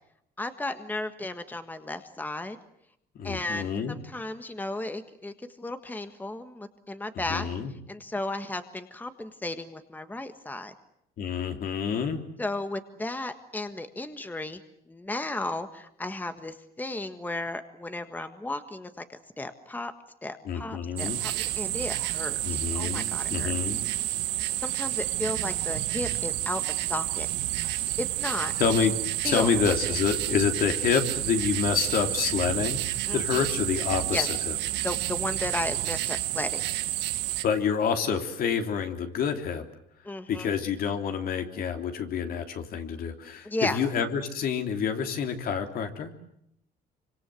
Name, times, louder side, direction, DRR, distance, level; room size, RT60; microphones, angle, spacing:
voice 1, 0.4-2.6 3.2-7.5 7.9-10.7 12.4-14.6 14.9-19.9 20.2-22.4 22.7-23.5 24.6-27.3 28.0-28.5 29.2-29.8 33.1-33.5 34.1-34.3 34.8-36.6 40.0-40.5 43.4-43.8, left 2 dB, 10° left, 9 dB, 1.6 m, -34 dB
voice 2, 3.1-4.0 7.3-7.7 11.2-12.2 20.4-21.2 22.4-23.8 28.6-28.9 29.2-34.6 37.4-39.6 40.3-46.1, left 7 dB, 60° left, 5 dB, 3.4 m, -28 dB
sound 1, 21.0-37.4, right 15 dB, 85° right, 1.4 m, -30 dB
26.0 x 25.5 x 7.8 m, 0.75 s
cardioid pair, 110°, 17 cm